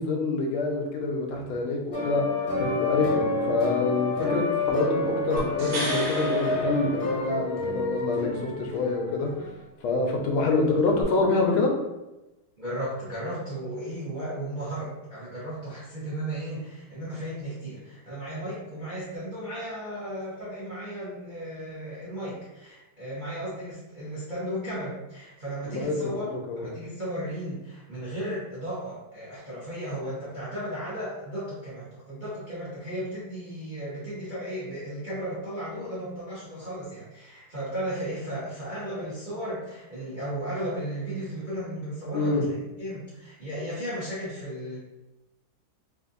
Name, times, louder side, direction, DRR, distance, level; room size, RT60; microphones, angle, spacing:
voice 1, 0.0-9.5 9.8-11.7 25.7-25.9 26.2-26.6 42.1-42.4, left 3 dB, 85° left, 2 dB, 1.5 m, -26 dB
sound 1, 1.9-9.5, left 2 dB, 45° left, 0.9 m, -29 dB
sound 2, 5.4-7.6 11.0-11.1, right 1 dB, 85° right, 2.0 m, -34 dB
voice 2, 12.6-44.8, right 1 dB, 40° right, -10 dB, 0.7 m, -35 dB
4.0 x 2.6 x 2.5 m, 1.0 s
omnidirectional pair, 2.2 m